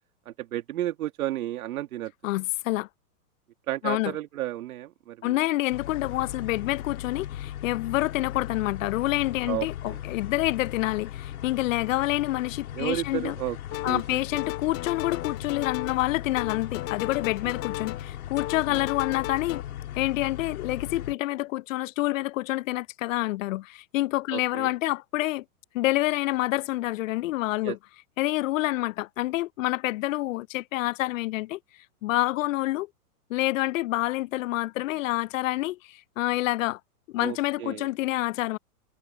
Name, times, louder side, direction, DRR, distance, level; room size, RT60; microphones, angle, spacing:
voice 1, 0.3-2.1 3.7-5.4 9.5-10.0 12.7-13.6 13.8-14.2 18.7-18.8 24.3-24.7 27.6-27.8 37.2-37.9, right 14 dB, 70° right, 1.8 m, -32 dB
voice 2, 2.2-2.9 3.8-4.1 5.2-13.4 13.8-19.6 20.0-25.4 25.7-27.8 28.2-31.6 32.0-32.9 33.3-36.8 37.1-38.6, left 17 dB, 60° left, 0.6 m, -27 dB
sound 1, 5.7-21.2, left 11 dB, 75° left, 3.2 m, -38 dB
sound 2, 13.7-14.1 14.4-16.1 16.4-18.1 18.4-19.6, left 18 dB, 30° left, 2.4 m, -35 dB
hypercardioid pair, 140°, 44 cm